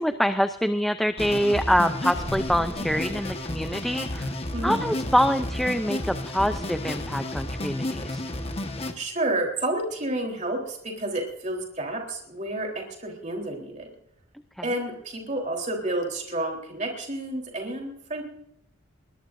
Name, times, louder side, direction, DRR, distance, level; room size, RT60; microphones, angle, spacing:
voice 1, 0.0-4.3 4.6-8.2 14.6-14.7, equal, ahead, 8 dB, 0.5 m, -25 dB
sound 1, 1.2-8.9, left 1 dB, 30° left, 1.4 m, -32 dB
sound 2, 2.1-4.4, equal, 55° right, 4.1 m, -43 dB
voice 2, 2.5-2.9 4.5-4.8 9.0-13.9 14.6-18.2, right 1 dB, 35° right, 1 dB, 3.7 m, -30 dB
21.0 x 21.0 x 2.6 m, 0.78 s
head